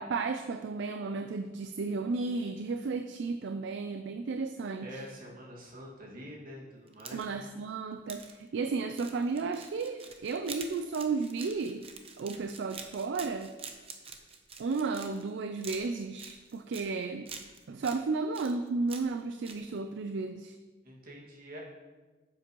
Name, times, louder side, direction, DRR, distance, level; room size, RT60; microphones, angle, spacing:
voice 1, 0.0-5.0 7.1-11.8 12.2-13.5 14.6-17.3 17.7-20.6, right 4 dB, 65° right, 8 dB, 0.4 m, -33 dB
voice 2, 4.8-7.3 20.8-21.6, equal, 50° right, -3 dB, 2.0 m, -46 dB
sound 1, 6.9-7.5 8.1-8.3 8.9-15.3 15.6-16.9 17.3-18.0 18.3-19.2 19.4-19.6, right 5 dB, 30° right, 0.8 m, -46 dB
9.8 x 7.5 x 3.0 m, 1.3 s
head